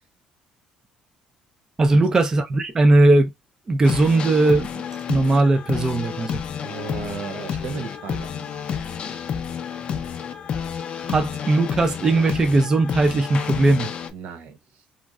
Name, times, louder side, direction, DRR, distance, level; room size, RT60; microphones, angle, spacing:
voice 1, 1.8-3.3 3.7-4.8 5.1-6.4 11.0-13.9, right 2 dB, 25° right, 0.4 m, -18 dB
sound 1, 3.8-14.1, left 7 dB, 40° left, 0.4 m, -30 dB
voice 2, 6.6-8.7 14.1-14.8, right 5 dB, 75° right, 0.7 m, -35 dB
3.0 x 2.5 x 2.3 m
cardioid pair, 140°, 3 cm